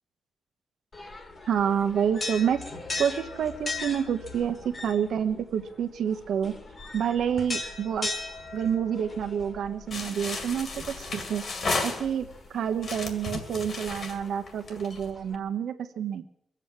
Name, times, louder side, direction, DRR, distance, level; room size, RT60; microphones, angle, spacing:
sound 1, 0.9-15.4, left 3 dB, 30° left, 1.7 m, -40 dB
voice 1, 1.5-2.7 3.0-6.5 6.9-8.1 8.5-11.4 11.8-16.2, right 8 dB, 75° right, 8 dB, 1.2 m, -28 dB
sound 2, 9.9-12.4 12.8-15.0, left 3 dB, 45° left, 2.2 m, -33 dB
22.5 x 8.2 x 7.6 m, 0.72 s
wide cardioid pair, 170°, 0 cm